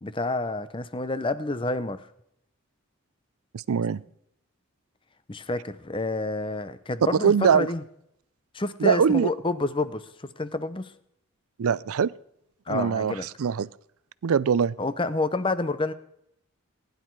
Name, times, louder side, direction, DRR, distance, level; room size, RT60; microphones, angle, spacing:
voice 1, 0.0-2.1 5.3-7.8 8.5-10.9 12.7-13.3 14.8-15.9, left 2 dB, 25° left, 0.7 m, -29 dB
voice 2, 3.5-4.0 7.2-7.7 8.8-9.3 11.6-12.1 12.7-13.7 14.2-14.7, right 7 dB, 80° right, 0.4 m, -22 dB
20.0 x 10.5 x 4.7 m
head